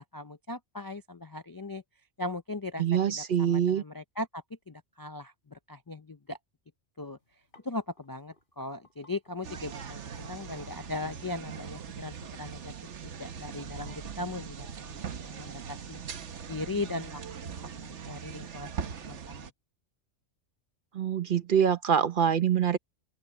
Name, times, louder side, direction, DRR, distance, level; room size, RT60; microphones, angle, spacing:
voice 1, 0.0-1.8 2.2-6.4 7.0-7.2 7.6-12.7 13.2-16.0 16.5-17.2 17.6-19.5, left 2 dB, 30° left, 0.4 m, -38 dB
voice 2, 2.8-3.8 20.9-22.8, right 8 dB, 50° right, 0.9 m, -25 dB
sound 1, 7.3-12.5, left 2 dB, 45° left, 6.1 m, -60 dB
sound 2, 9.4-19.5, right 7 dB, 80° right, 1.3 m, -41 dB
open air
omnidirectional pair, 1.2 m